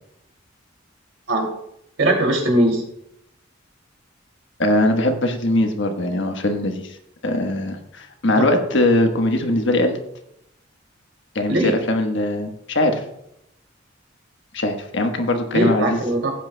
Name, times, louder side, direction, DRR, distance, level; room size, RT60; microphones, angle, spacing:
voice 1, 2.0-2.8 11.5-11.8 15.5-16.3, right 1 dB, 85° right, 2 dB, 2.5 m, -19 dB
voice 2, 4.6-7.0 7.2-10.0 11.3-13.0 14.5-16.0, left 1 dB, 65° left, 5 dB, 1.2 m, -21 dB
16.0 x 9.0 x 2.2 m, 0.78 s
head